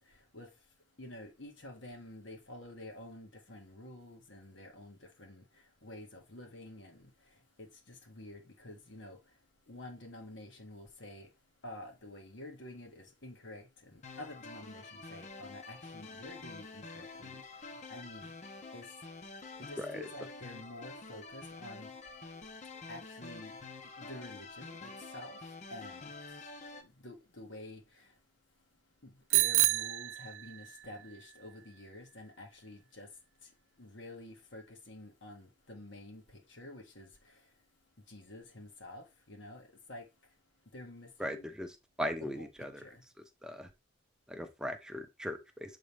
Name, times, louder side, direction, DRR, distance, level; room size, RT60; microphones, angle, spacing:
voice 1, 1.0-5.4 5.8-7.1 7.6-9.2 9.7-11.3 11.6-17.4 17.9-18.3 18.7-18.9 19.6-21.9 22.9-23.6 24.0-25.4 25.7-26.1 26.8-28.1 29.0-33.1 33.8-37.1 38.1-40.0 40.7-41.5 42.2-42.5 42.8-43.0, left 1 dB, 70° left, 1.6 m, -49 dB
sound 1, 14.0-26.8, left 3 dB, 40° left, 0.8 m, -48 dB
voice 2, 19.8-20.1 41.2-41.7 42.0-42.8 43.4-43.7 44.3-45.8, equal, 5° right, 0.7 m, -38 dB
Bicycle bell, 29.3-30.9, right 17 dB, 85° right, 0.4 m, -29 dB
7.2 x 3.8 x 3.4 m
head